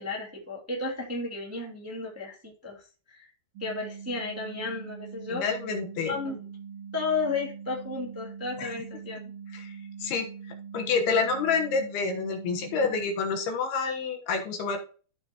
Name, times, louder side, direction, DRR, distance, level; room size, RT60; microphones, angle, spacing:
voice 1, 0.0-2.8 3.1-3.3 3.6-5.4 6.0-6.4 6.9-9.2, left 3 dB, 5° right, -3 dB, 1.4 m, -33 dB
sound 1, 3.5-13.0, right 7 dB, 65° right, 1.5 m, -43 dB
voice 2, 5.3-6.2 8.6-8.7 9.5-9.7 10.0-10.3 10.7-14.8, left 5 dB, 70° left, 3 dB, 3.1 m, -28 dB
14.0 x 5.7 x 3.0 m, 0.37 s
omnidirectional pair, 4.9 m